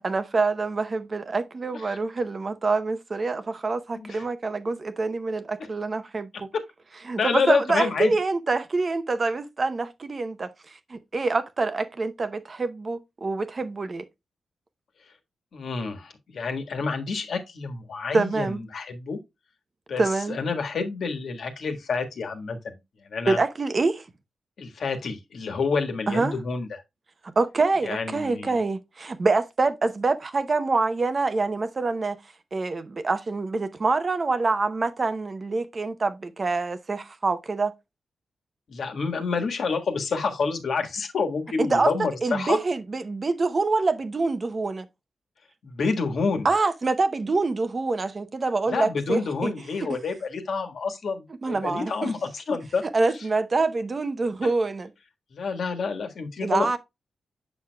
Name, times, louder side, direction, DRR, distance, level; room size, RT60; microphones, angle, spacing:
voice 1, 0.0-6.5 7.1-10.5 10.9-14.0 18.1-18.6 20.0-20.4 23.3-24.0 26.1-26.3 27.4-32.2 32.5-37.7 41.6-41.9 42.2-44.9 46.4-49.5 51.4-52.1 52.9-54.9 56.4-56.8, right 3 dB, 35° right, 0.6 m, -26 dB
voice 2, 3.9-4.2 7.2-8.1 15.5-19.2 19.9-20.0 20.3-22.6 23.1-23.4 24.6-26.8 27.8-28.6 38.7-42.6 45.6-46.5 48.7-52.8 55.3-56.8, left 4 dB, 65° left, 1.5 m, -28 dB
7.4 x 6.2 x 2.2 m
wide cardioid pair, 145°, 0 cm